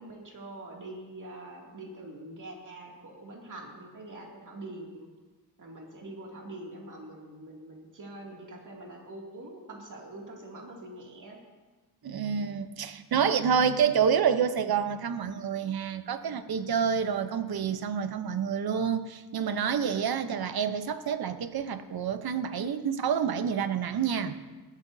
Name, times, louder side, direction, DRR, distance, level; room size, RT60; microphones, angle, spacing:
voice 1, 0.0-5.1 5.6-11.4, right 1 dB, 50° right, -1 dB, 2.5 m, -44 dB
voice 2, 12.0-24.4, right 7 dB, 70° right, 10 dB, 0.8 m, -28 dB
19.5 x 12.5 x 2.7 m, 1.3 s
wide cardioid pair, 110°, 38 cm